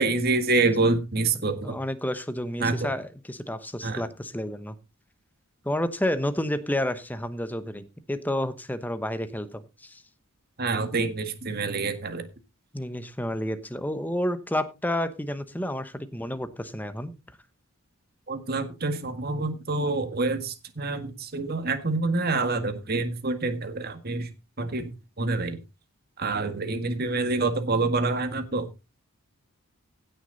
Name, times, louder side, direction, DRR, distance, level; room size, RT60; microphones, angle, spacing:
voice 1, 0.0-1.8 2.6-2.9 3.8-4.0 10.6-12.3 18.3-24.3 24.6-25.6 26.2-28.7, right 3 dB, 45° right, 8 dB, 1.7 m, -27 dB
voice 2, 1.6-4.7 5.6-10.0 12.7-17.1, left 1 dB, 10° left, 11 dB, 0.9 m, -30 dB
16.5 x 6.4 x 4.0 m, 0.27 s
head